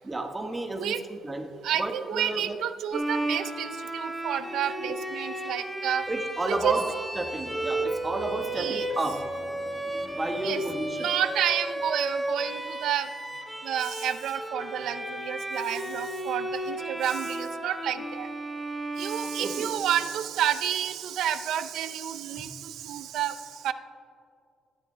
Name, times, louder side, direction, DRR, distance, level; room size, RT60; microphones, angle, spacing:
voice 1, 0.0-1.5 1.8-2.6 4.8-4.9 6.1-11.1 19.4-19.7, right 2 dB, 20° right, 4 dB, 1.3 m, -32 dB
voice 2, 1.6-6.1 6.5-6.8 8.6-8.9 10.4-10.6 10.9-13.1 13.6-18.3 19.0-23.7, right 10 dB, 80° right, 10 dB, 0.5 m, -30 dB
Bowed string instrument, 2.9-20.3, right 1 dB, 5° right, 1.1 m, -34 dB
19.5 x 13.5 x 2.2 m, 2.4 s
cardioid pair, 90°, 0 cm